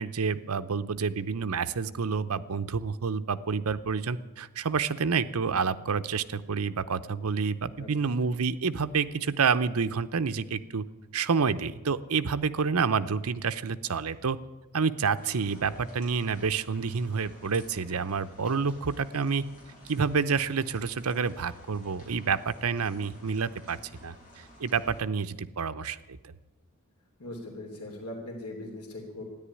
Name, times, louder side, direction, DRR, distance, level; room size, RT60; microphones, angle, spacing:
voice 1, 0.0-10.8 11.1-14.4 14.7-19.4 19.8-26.2, right 5 dB, 70° right, 12 dB, 0.7 m, -28 dB
sound 1, 15.2-25.0, equal, 35° left, 6.8 m, -53 dB
voice 2, 27.2-29.2, left 1 dB, 85° left, 1 dB, 3.0 m, -40 dB
13.5 x 10.5 x 9.9 m, 1.1 s
head